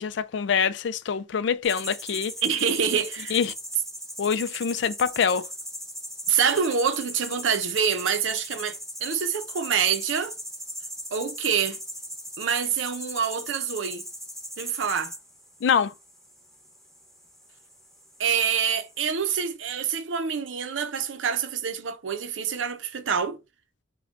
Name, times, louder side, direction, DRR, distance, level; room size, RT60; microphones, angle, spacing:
voice 1, 0.0-2.3 3.3-3.5 4.2-5.4 15.6-15.9, left 6 dB, 65° left, 0.3 m, -25 dB
sound 1, 1.6-19.5, equal, ahead, 1.0 m, -39 dB
voice 2, 2.4-3.4 6.3-10.3 11.1-11.8 12.4-14.0 14.6-15.1 18.2-23.4, right 7 dB, 85° right, 0.6 m, -26 dB
3.6 x 2.2 x 3.5 m
head